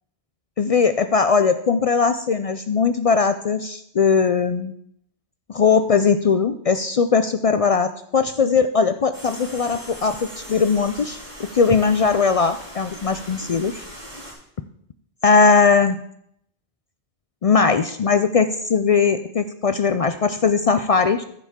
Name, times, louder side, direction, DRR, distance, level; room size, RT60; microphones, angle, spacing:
voice 1, 0.6-4.7 5.5-13.8 15.2-16.0 17.4-21.2, left 5 dB, 55° left, 10 dB, 0.4 m, -19 dB
sound 1, 9.1-14.3, equal, 50° right, 4.4 m, -39 dB
14.0 x 7.1 x 3.6 m, 0.70 s
omnidirectional pair, 1.0 m